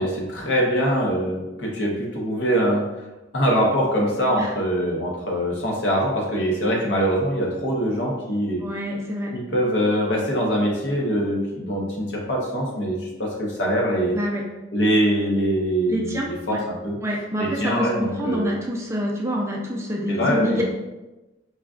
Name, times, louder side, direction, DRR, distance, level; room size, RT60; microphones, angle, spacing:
voice 1, 0.0-2.9 3.3-8.6 9.3-14.2 14.7-16.2 16.5-16.6 16.8-17.0 17.4-18.5 20.1-20.6, equal, 70° left, -2 dB, 0.8 m, -23 dB
voice 2, 8.6-9.3 14.1-14.4 15.9-16.6 17.0-20.6, equal, 15° right, -2 dB, 0.5 m, -27 dB
4.8 x 2.3 x 2.4 m, 1.1 s
head